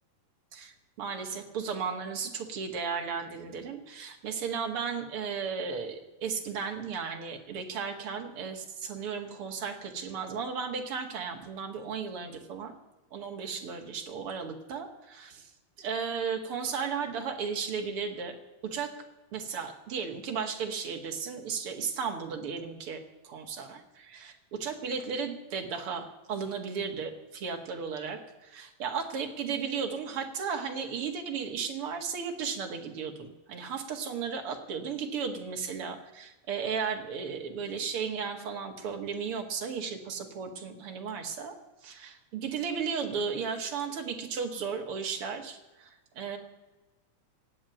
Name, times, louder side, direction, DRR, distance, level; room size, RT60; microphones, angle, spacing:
voice 1, 0.5-12.7 13.1-15.5 15.8-18.4 18.7-18.9 19.3-23.0 23.2-41.5 41.8-46.4, right 6 dB, 50° right, 4 dB, 2.5 m, -35 dB
18.0 x 8.5 x 9.2 m, 1.1 s
omnidirectional pair, 3.6 m